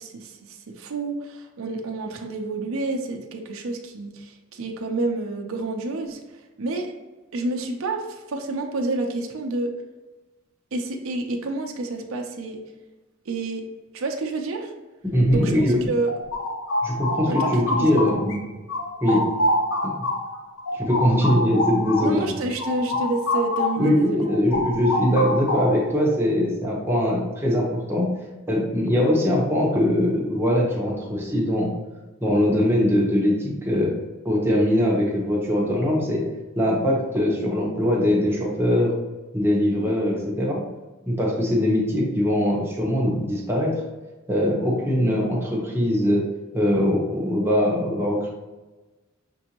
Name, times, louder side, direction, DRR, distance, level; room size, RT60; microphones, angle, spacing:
voice 1, 0.0-6.9 7.3-9.7 10.7-12.6 13.3-13.7 13.9-14.7 15.3-15.5 15.9-16.1 17.3-17.6 19.1-19.2 22.0-24.3 39.8-39.9, right 2 dB, 70° right, 3 dB, 0.6 m, -29 dB
voice 2, 15.0-15.8 16.8-18.4 19.0-19.3 19.8-19.9 20.7-22.3 23.8-28.1 28.5-31.7 32.2-33.9 34.2-36.2 36.5-38.9 39.3-40.6 41.1-43.7 44.3-46.2 46.5-48.3, left 1 dB, 10° right, -3 dB, 1.0 m, -21 dB
sound 1, 15.8-18.4 18.7-23.9 24.2-25.9, left 1 dB, 75° left, 0.7 m, -26 dB
6.1 x 2.6 x 2.9 m, 1.2 s
head